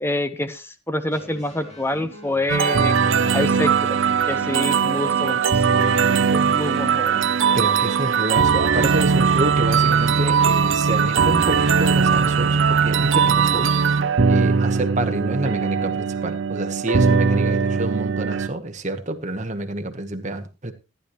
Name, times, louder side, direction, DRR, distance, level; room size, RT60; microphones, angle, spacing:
voice 1, 0.0-3.0 3.3-4.0 4.3-7.2, left 1 dB, 10° left, 11 dB, 0.8 m, -27 dB
sound 1, 1.1-13.1, left 1 dB, 30° left, 2.8 m, -43 dB
sound 2, 2.5-18.5, right 6 dB, 60° right, 0.6 m, -19 dB
voice 2, 7.5-13.8 14.3-20.7, right 1 dB, 35° right, 7 dB, 1.2 m, -28 dB
14.5 x 9.9 x 3.1 m, 0.29 s
head